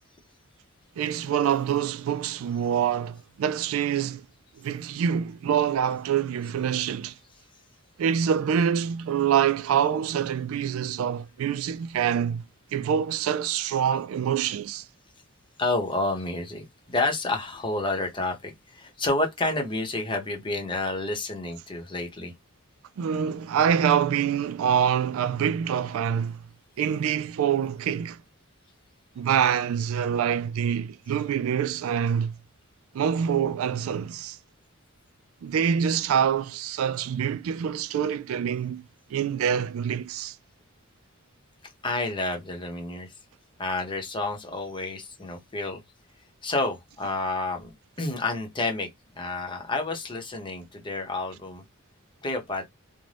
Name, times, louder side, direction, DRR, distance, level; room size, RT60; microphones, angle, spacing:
voice 1, 1.0-4.2 4.6-7.1 8.0-12.4 12.7-14.8 23.0-26.4 26.8-28.2 29.2-32.3 32.9-34.4 35.4-38.8 39.1-40.4, right 8 dB, 80° right, 0.3 m, -25 dB
voice 2, 15.6-22.3 41.6-43.1 43.6-45.8 46.4-48.9 49.1-51.6 52.2-52.7, left 2 dB, 25° left, 0.8 m, -29 dB
2.6 x 2.1 x 3.2 m
head